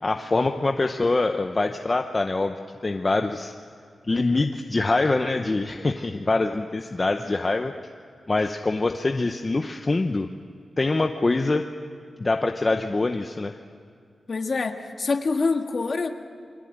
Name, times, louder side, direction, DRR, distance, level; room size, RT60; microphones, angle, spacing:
voice 1, 0.0-2.5 2.8-3.5 4.1-7.7 8.3-10.3 10.8-11.6 12.2-13.6, left 3 dB, 25° left, 5 dB, 0.8 m, -24 dB
voice 2, 14.3-16.1, left 4 dB, 45° left, 5 dB, 1.7 m, -25 dB
29.0 x 23.0 x 8.8 m, 2.3 s
wide cardioid pair, 170°, 0 cm